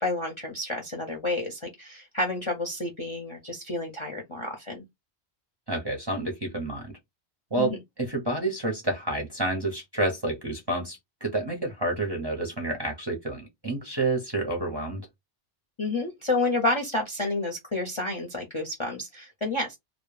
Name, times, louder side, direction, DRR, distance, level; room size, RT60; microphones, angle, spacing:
voice 1, 0.0-4.8 7.6-7.8 15.8-19.8, left 2 dB, 40° left, 0.5 m, -30 dB
voice 2, 5.7-6.9 7.5-15.0, right 2 dB, 30° right, 0.6 m, -29 dB
2.1 x 2.1 x 3.0 m
omnidirectional pair, 1.1 m